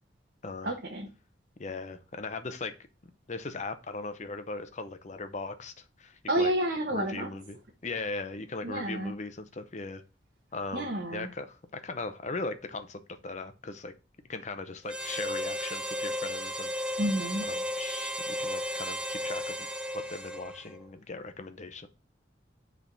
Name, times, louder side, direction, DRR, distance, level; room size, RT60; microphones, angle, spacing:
voice 1, 0.6-1.1 6.3-7.3 8.6-9.1 10.7-11.3 17.0-17.4, right 1 dB, 55° right, 1.0 m, -30 dB
voice 2, 1.6-2.7 3.3-6.5 6.9-7.6 7.8-10.0 10.5-13.9 14.3-16.7 17.5-19.7 19.9-21.9, left 3 dB, 40° left, 0.7 m, -38 dB
Harmonica, 14.9-20.8, equal, 5° right, 0.6 m, -34 dB
6.2 x 3.6 x 5.8 m
head